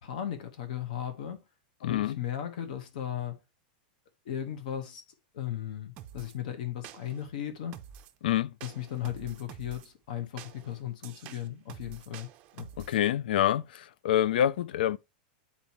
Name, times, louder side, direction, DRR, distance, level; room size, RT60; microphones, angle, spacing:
voice 1, 0.0-1.4 1.8-3.4 4.2-5.0 5.3-7.8 8.6-12.7, left 10 dB, 60° left, 1.1 m, -36 dB
voice 2, 1.8-2.2 8.2-8.5 12.8-15.0, left 11 dB, 85° left, 0.4 m, -27 dB
sound 1, 6.0-6.4 6.8-7.3 7.7-8.2 8.6-9.9 10.4-13.0, right 10 dB, 25° right, 0.5 m, -48 dB
8.9 x 4.2 x 2.9 m
supercardioid pair, 180°, 5 cm